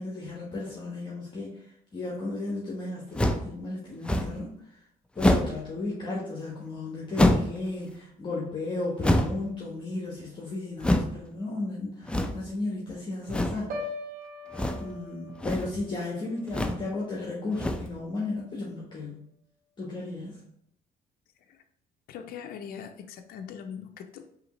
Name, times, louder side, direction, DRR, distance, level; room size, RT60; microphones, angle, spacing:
voice 1, 0.0-1.6 1.9-4.5 5.1-13.7 14.8-19.2 19.8-20.4, left 2 dB, 25° left, -3 dB, 1.1 m, -34 dB
sound 1, 3.1-3.5 4.0-4.4 5.2-5.6 7.1-7.6 9.0-9.5 10.8-11.2 12.0-12.5 13.3-13.7 14.5-14.9 15.3-15.8 16.5-16.9 17.5-18.0, left 1 dB, 5° left, 0.4 m, -25 dB
Piano, 13.7-17.7 18.0-18.4, left 2 dB, 60° right, 0.8 m, -42 dB
voice 2, 22.1-24.4, left 7 dB, 60° left, 6 dB, 0.5 m, -41 dB
4.9 x 2.9 x 3.0 m, 0.74 s
cardioid pair, 110°, 17 cm